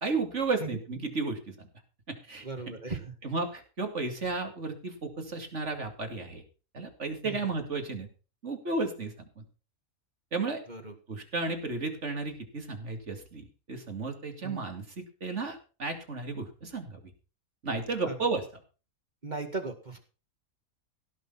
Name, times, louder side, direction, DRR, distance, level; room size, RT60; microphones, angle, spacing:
voice 1, 0.0-1.7 2.1-6.4 6.7-8.1 8.4-9.4 10.3-10.6 11.1-17.0 17.6-18.4, right 3 dB, 55° right, 5 dB, 2.9 m, -33 dB
voice 2, 2.4-3.1 7.2-7.4 10.7-10.9 14.4-14.6 18.1-18.2 19.2-20.0, right 3 dB, 30° right, 5 dB, 2.1 m, -37 dB
16.5 x 6.7 x 5.7 m, 0.35 s
omnidirectional pair, 1.5 m